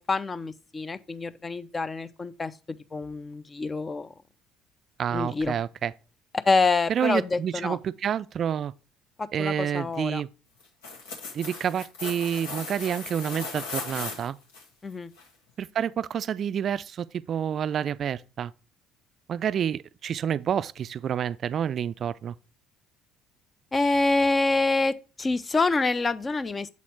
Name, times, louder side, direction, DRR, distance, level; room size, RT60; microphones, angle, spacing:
voice 1, 0.0-4.1 5.1-5.5 6.5-7.8 9.2-10.2 14.8-15.1 23.7-26.7, left 3 dB, 25° left, 0.6 m, -26 dB
voice 2, 5.0-5.9 6.9-8.7 9.3-10.3 11.3-14.4 15.6-18.5 19.3-22.3, right 8 dB, 50° right, 0.4 m, -28 dB
sound 1, 10.6-14.6 15.2-15.3, left 3 dB, 80° left, 1.4 m, -37 dB
7.1 x 4.2 x 4.5 m
hypercardioid pair, 60°, 0 cm